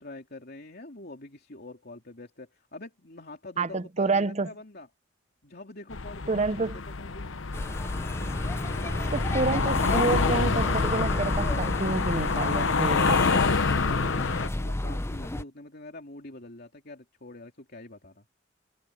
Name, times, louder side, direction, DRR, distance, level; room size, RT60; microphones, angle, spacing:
voice 1, 0.0-4.9 5.4-7.4 13.6-18.2, left 2 dB, 55° left, 3.0 m, -45 dB
voice 2, 3.6-4.5 6.3-6.8 9.1-13.4, right 3 dB, 35° right, 0.7 m, -28 dB
sound 1, 5.9-14.5, left 4 dB, 85° left, 0.9 m, -27 dB
sound 2, 7.5-15.4, left 1 dB, 15° left, 0.5 m, -32 dB
head